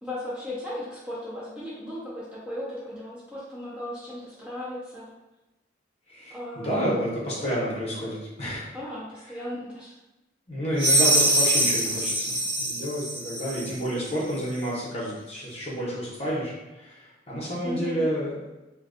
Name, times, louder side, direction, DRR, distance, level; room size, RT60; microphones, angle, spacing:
voice 1, 0.0-5.1 6.3-6.9 8.7-9.9 17.6-18.0, left 1 dB, 5° right, -9 dB, 0.4 m, -36 dB
voice 2, 6.1-8.7 10.5-18.5, equal, 35° left, -6 dB, 0.7 m, -30 dB
sound 1, 10.8-13.8, right 1 dB, 65° right, 1.0 m, -23 dB
2.5 x 2.2 x 2.4 m, 1.0 s
head